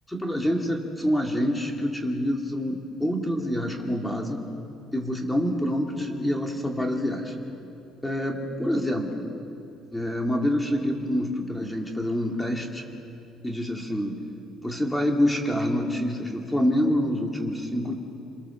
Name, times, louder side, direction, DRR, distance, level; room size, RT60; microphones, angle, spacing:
voice 1, 0.1-4.4 4.9-7.3 8.0-9.3 9.9-12.8 13.4-14.2 14.6-17.9, equal, 10° left, 1 dB, 2.7 m, -26 dB
26.5 x 23.5 x 7.3 m, 2.6 s
cardioid pair, 105°, 0 cm